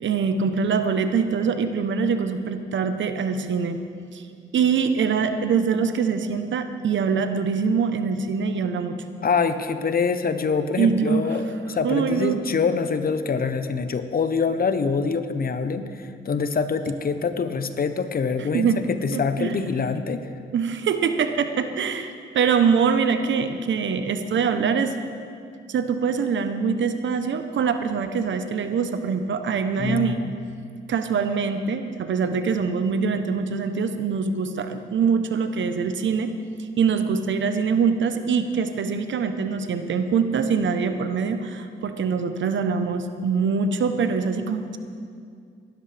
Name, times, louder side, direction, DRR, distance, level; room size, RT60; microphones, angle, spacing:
voice 1, 0.0-3.8 4.1-4.2 4.5-9.0 10.8-11.3 11.8-12.4 18.5-18.8 19.1-19.6 20.5-24.9 25.7-30.2 30.9-36.3 36.8-44.8, right 6 dB, 65° right, 8 dB, 0.9 m, -23 dB
voice 2, 9.2-20.2 29.8-30.3, left 5 dB, 45° left, 10 dB, 0.9 m, -25 dB
18.0 x 13.0 x 3.4 m, 2.3 s
cardioid pair, 65°, 20 cm